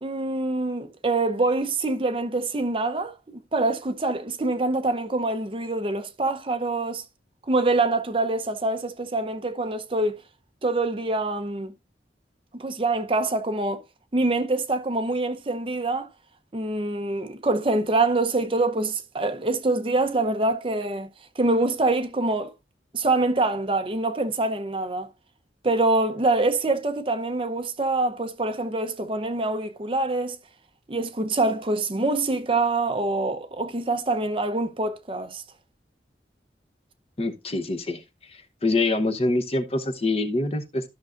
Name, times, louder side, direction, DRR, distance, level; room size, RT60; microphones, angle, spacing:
voice 1, 0.0-3.1 3.5-7.0 7.5-10.2 10.6-11.7 12.6-13.8 14.1-16.1 16.5-21.1 21.4-22.5 22.9-25.1 25.6-30.4 30.9-35.4, right 2 dB, 30° right, 0.7 m, -25 dB
voice 2, 37.2-38.0 38.3-40.8, left 2 dB, 35° left, 0.8 m, -25 dB
13.0 x 6.2 x 2.5 m
head